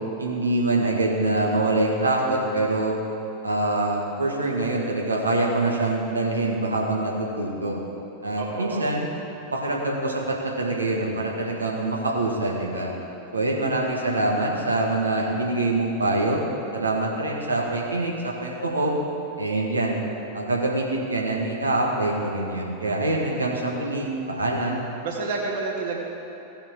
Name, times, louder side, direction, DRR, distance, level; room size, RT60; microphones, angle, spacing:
voice 1, 0.2-3.0 3.4-7.8 8.2-9.1 9.5-12.9 13.3-16.4 16.7-18.9 19.4-20.0 20.3-24.8, right 2 dB, 80° right, -2 dB, 1.6 m, -25 dB
voice 2, 8.4-9.0 25.0-26.0, right 3 dB, 55° right, -2 dB, 2.0 m, -29 dB
17.0 x 5.7 x 4.5 m, 3.0 s
figure-of-eight pair, 90°, 0 cm